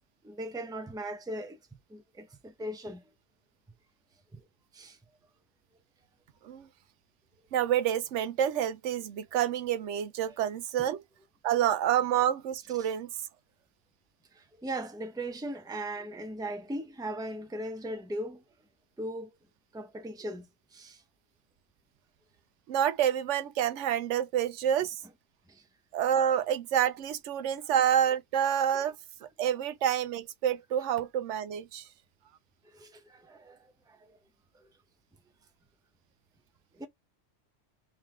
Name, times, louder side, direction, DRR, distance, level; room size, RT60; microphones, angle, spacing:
voice 1, 0.2-1.6 1.9-3.0 4.3-4.4 4.7-5.0 10.3-10.4 12.8-12.9 14.3-18.4 19.0-19.3 19.7-20.5 20.7-21.0 25.5-25.6 28.7-28.8 32.7-34.2 34.5-34.6 36.7-36.9, right 1 dB, 5° right, 0.6 m, -39 dB
voice 2, 7.5-11.0 11.4-13.1 22.7-24.9 25.9-28.9 29.4-31.8, right 10 dB, 90° right, 0.9 m, -28 dB
3.8 x 3.2 x 4.3 m
omnidirectional pair, 1.2 m